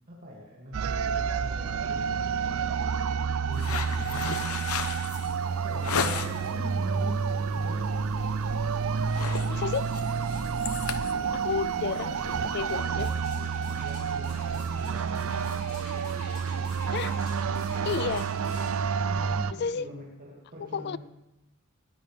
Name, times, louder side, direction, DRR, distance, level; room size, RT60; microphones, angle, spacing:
voice 1, 0.1-2.7 3.4-4.5 5.5-7.9 10.9-11.4 11.8-12.5 12.8-15.4 19.0-21.0, equal, 40° right, -4 dB, 2.4 m, -43 dB
sound 1, 0.7-19.5, right 6 dB, 70° right, 0.5 m, -29 dB
sound 2, 3.5-6.5 7.0-7.4 7.7-7.9 8.2-8.6 8.9-12.8, left 6 dB, 90° left, 0.9 m, -35 dB
voice 2, 9.5-9.9 11.3-13.1 13.4-13.5 16.9-17.2 17.8-18.3 19.5-19.9 20.7-21.0, left 6 dB, 50° left, 19 dB, 0.4 m, -31 dB
sound 3, 12.5-18.8 19.4-19.5, left 2 dB, 70° left, 5.7 m, -48 dB
20.5 x 14.0 x 3.4 m, 0.93 s
head